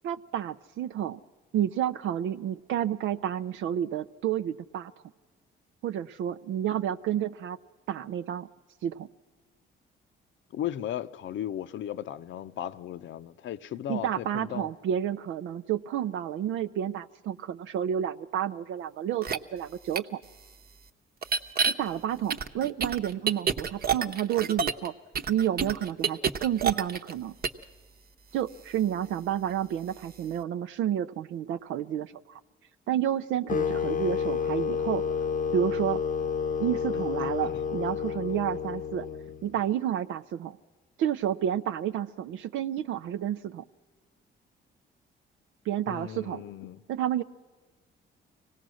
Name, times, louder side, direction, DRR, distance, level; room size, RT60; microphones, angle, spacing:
voice 1, 0.0-1.2 1.5-4.9 5.8-7.6 7.9-8.5 8.8-9.1 13.9-20.2 21.7-24.9 25.3-27.3 28.3-32.4 32.9-35.2 35.5-36.0 36.6-39.1 39.4-40.6 41.0-43.6 45.6-46.4 46.9-47.2, right 10 dB, 80° right, 0.5 m, -30 dB
voice 2, 10.5-14.7 36.9-37.6 45.9-46.8, left 11 dB, 70° left, 0.7 m, -36 dB
sound 1, 19.2-19.4 19.9-20.0 21.2-21.7 22.3-24.9 25.1-27.1 27.4-27.6, right 6 dB, 50° right, 0.9 m, -27 dB
sound 2, 33.5-39.6, left 6 dB, 40° left, 0.7 m, -30 dB
24.5 x 18.0 x 6.3 m
cardioid pair, 90°, 20 cm